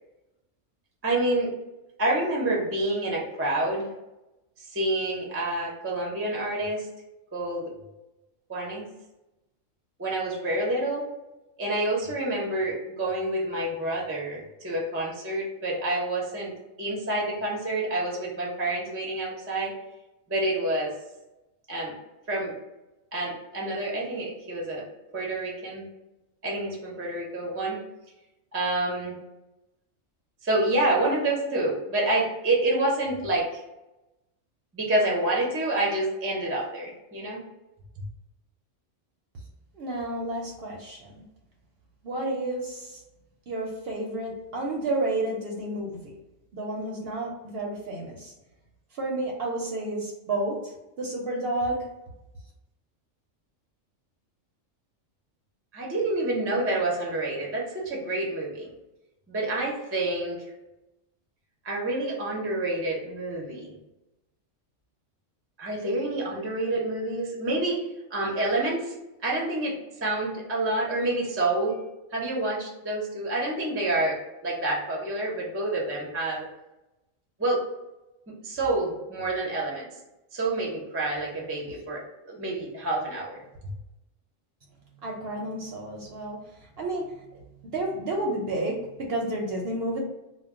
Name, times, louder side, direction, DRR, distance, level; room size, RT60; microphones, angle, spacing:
voice 1, 1.0-1.5 2.0-3.9 4.6-6.9 7.3-7.7 8.5-8.9 10.0-11.1 11.6-19.8 20.3-20.9 21.7-22.0 22.3-22.5 23.1-24.9 25.1-25.9 26.4-27.8 28.5-29.2 30.4-33.6 34.7-37.4 55.7-58.7 59.3-60.5 61.6-63.7 65.6-67.8 68.1-68.9 69.2-71.8 72.1-76.4 77.4-77.7 78.3-79.9 80.3-82.0 82.3-83.4, right 2 dB, 20° right, -3 dB, 0.4 m, -28 dB
voice 2, 39.7-41.2 42.0-43.0 43.5-46.1 46.5-48.3 48.9-51.8 84.9-90.0, right 2 dB, 60° right, -1 dB, 0.7 m, -31 dB
2.2 x 2.1 x 3.5 m, 0.97 s
omnidirectional pair, 1.3 m